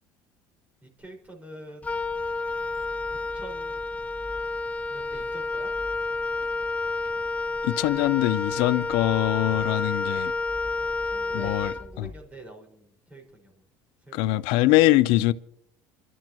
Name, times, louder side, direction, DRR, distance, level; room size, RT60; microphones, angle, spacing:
voice 1, 0.8-1.9 3.1-3.8 4.9-5.7 10.7-13.6 14.0-14.6, right 1 dB, 15° right, 5.1 m, -46 dB
Wind instrument woodwind instrument, 1.8-12.3, left 3 dB, 15° left, 0.7 m, -30 dB
voice 2, 7.6-10.3 11.3-12.1 14.1-15.3, left 16 dB, 75° left, 0.5 m, -23 dB
27.5 x 12.5 x 3.0 m
supercardioid pair, 95°, 9 cm